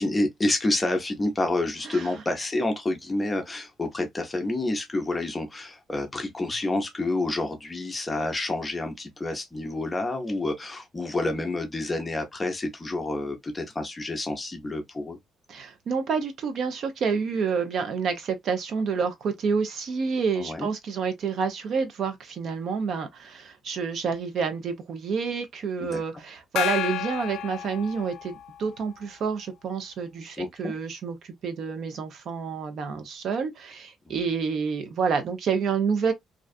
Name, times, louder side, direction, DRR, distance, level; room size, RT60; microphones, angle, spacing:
voice 1, 0.0-15.2 20.4-20.7 25.8-26.0 30.4-30.7 34.1-34.2, left 2 dB, 15° left, 0.5 m, -29 dB
voice 2, 15.5-36.1, right 5 dB, 50° right, 0.5 m, -28 dB
Gong, 26.6-28.6, left 10 dB, 75° left, 0.4 m, -30 dB
2.5 x 2.3 x 2.3 m
cardioid pair, 170°, 0 cm